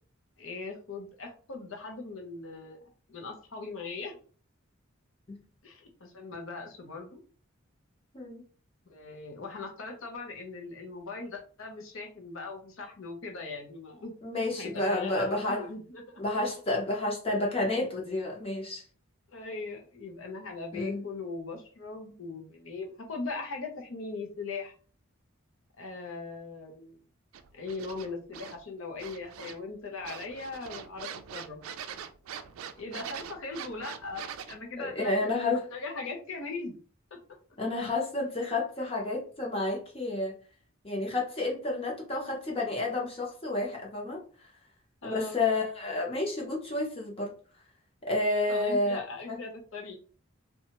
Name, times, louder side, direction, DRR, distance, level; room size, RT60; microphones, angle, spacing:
voice 1, 0.4-2.8 3.1-4.2 5.6-7.2 8.9-14.1 14.6-16.2 19.3-24.7 25.8-27.0 27.5-31.6 32.8-36.7 37.1-37.2 45.0-45.4 48.5-50.0, left 3 dB, 70° left, 3 dB, 0.7 m, -40 dB
voice 2, 14.2-15.7 16.2-18.8 20.7-21.0 34.8-35.7 37.6-40.3 40.8-44.2 45.0-47.3 48.1-49.0 49.3-49.4, left 2 dB, 30° left, -2 dB, 0.8 m, -30 dB
sound 1, 27.3-28.6 29.0-29.7 30.0-34.6, right 8 dB, 85° right, 0.3 m, -42 dB
2.7 x 2.3 x 2.9 m, 0.41 s
head